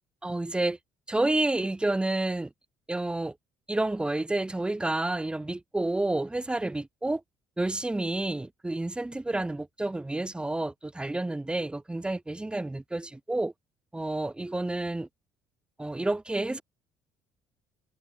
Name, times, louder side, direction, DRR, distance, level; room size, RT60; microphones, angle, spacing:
voice 1, 0.2-0.8 1.1-2.5 2.9-3.3 3.7-7.2 7.6-13.5 13.9-15.1 15.8-16.6, right 2 dB, 10° right, 5.1 m, -29 dB
supercardioid pair, 90°, 8 cm